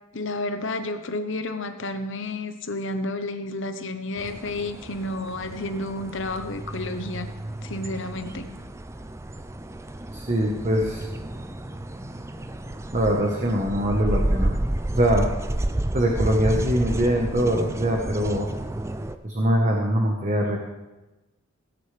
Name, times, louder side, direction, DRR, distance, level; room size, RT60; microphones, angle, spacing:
voice 1, 0.1-7.3 7.6-8.5, left 2 dB, 60° left, 9 dB, 0.9 m, -31 dB
sound 1, 4.2-19.2, right 1 dB, 15° right, 0.4 m, -31 dB
voice 2, 10.1-11.0 12.9-14.5 14.9-15.3 15.9-18.5 19.2-20.6, equal, 35° right, 0 dB, 1.2 m, -23 dB
17.5 x 9.9 x 3.3 m, 1.1 s
head